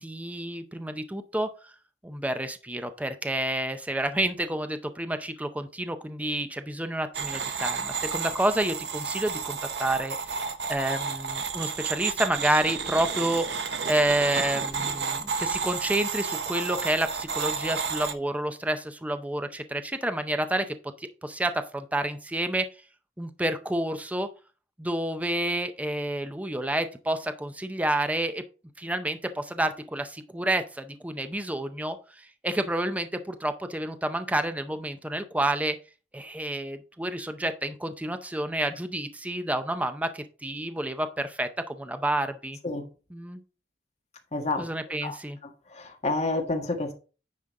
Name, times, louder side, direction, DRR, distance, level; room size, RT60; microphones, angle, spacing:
voice 1, 0.0-1.5 2.0-10.2 10.7-20.7 21.0-22.6 23.2-24.3 24.8-28.4 28.8-32.0 32.4-35.8 36.1-42.6 43.1-43.4 44.6-45.4, right 1 dB, 10° right, 0.5 m, -29 dB
sound 1, 7.1-18.1, right 5 dB, 70° right, 0.8 m, -31 dB
voice 2, 44.3-44.7 45.0-45.2 45.4-46.9, left 2 dB, 40° left, 1.5 m, -29 dB
9.6 x 5.0 x 3.7 m
head